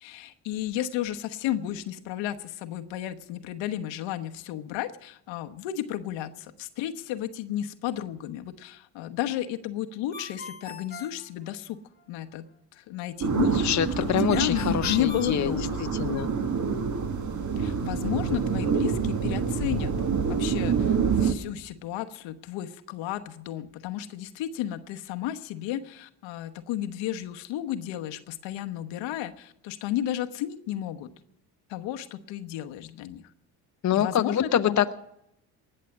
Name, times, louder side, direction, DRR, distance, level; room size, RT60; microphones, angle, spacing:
voice 1, 0.0-11.8 12.1-13.6 14.0-15.8 17.6-19.9 20.3-31.1 31.7-33.2 33.9-34.8, left 12 dB, 70° left, 7 dB, 1.1 m, -33 dB
Ringtone, 10.1-12.0 14.3-16.2, left 4 dB, 20° left, 1.3 m, -43 dB
sound 1, 13.2-21.3, right 6 dB, 40° right, 1.6 m, -27 dB
voice 2, 13.5-16.3 33.8-34.9, left 10 dB, 40° left, 9 dB, 0.8 m, -25 dB
19.0 x 6.7 x 9.5 m, 0.79 s
hypercardioid pair, 60°, 46 cm